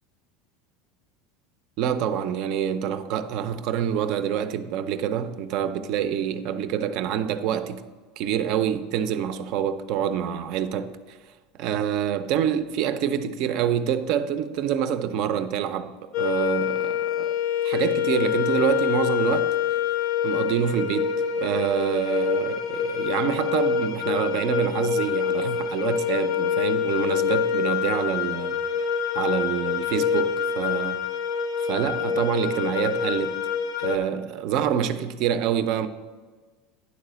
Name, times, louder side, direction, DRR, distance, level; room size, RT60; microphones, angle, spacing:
voice 1, 1.8-7.8 8.2-11.2 11.6-15.9 16.2-17.3 17.6-19.5 20.2-28.6 29.1-31.0 31.6-33.4 33.8-35.9, right 9 dB, 50° right, 0.5 m, -26 dB
sound 1, 16.1-34.0, left 7 dB, 50° left, 0.5 m, -26 dB
9.7 x 4.0 x 6.7 m
supercardioid pair, 165°, 0 cm